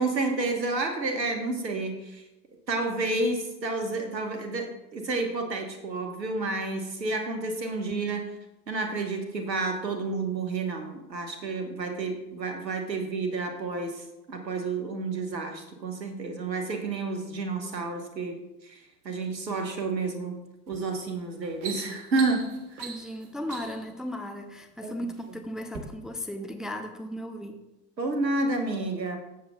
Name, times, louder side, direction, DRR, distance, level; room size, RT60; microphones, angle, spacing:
voice 1, 0.0-2.2 2.7-8.3 8.7-18.4 18.6-18.8 19.0-20.3 20.7-22.5 22.7-22.9 24.8-24.9 28.0-29.2, right 3 dB, 90° right, 4 dB, 1.4 m, -30 dB
sound 1, 20.7-20.9 21.3-23.9 24.7-25.3 25.7-25.8, right 6 dB, 65° right, 1.5 m, -41 dB
voice 2, 22.8-27.6, equal, ahead, 5 dB, 0.6 m, -36 dB
16.5 x 7.4 x 2.3 m, 0.97 s
figure-of-eight pair, 75°, 49 cm